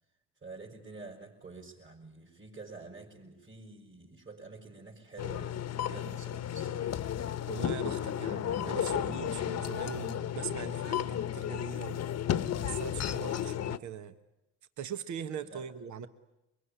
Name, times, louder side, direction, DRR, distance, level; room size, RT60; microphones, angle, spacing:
voice 1, 0.4-6.9 15.4-15.7, right 3 dB, 40° right, -3 dB, 5.5 m, -48 dB
sound 1, 5.2-13.8, left 10 dB, 60° left, 1.0 m, -33 dB
voice 2, 7.5-12.0 12.6-14.2 14.8-16.1, right 7 dB, 70° right, 10 dB, 1.3 m, -41 dB
24.0 x 22.0 x 10.0 m, 0.93 s
cardioid pair, 90°, 30 cm